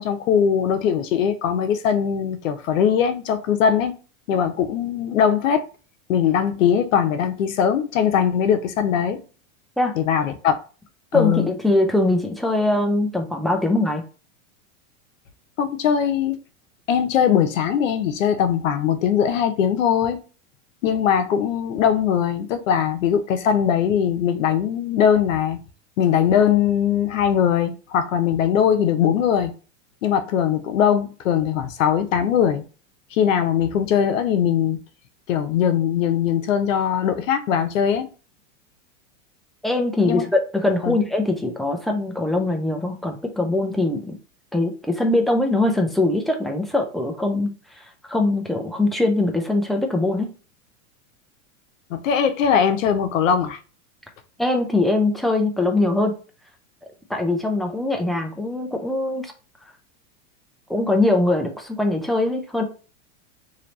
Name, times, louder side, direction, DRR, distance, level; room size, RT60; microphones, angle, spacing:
voice 1, 0.0-4.0 4.3-5.6 6.1-9.2 10.0-10.6 11.1-11.5 15.6-16.4 16.9-20.2 20.8-25.6 26.0-29.5 30.0-32.6 33.1-34.8 35.3-38.1 40.0-40.2 40.8-41.0 51.9-53.6, left 8 dB, 85° left, 0.9 m, -20 dB
voice 2, 11.1-14.0 39.6-44.1 44.5-50.3 54.4-56.1 57.1-59.3 60.7-62.6, left 2 dB, ahead, 0.3 m, -22 dB
3.2 x 2.8 x 4.0 m
supercardioid pair, 130°, 38 cm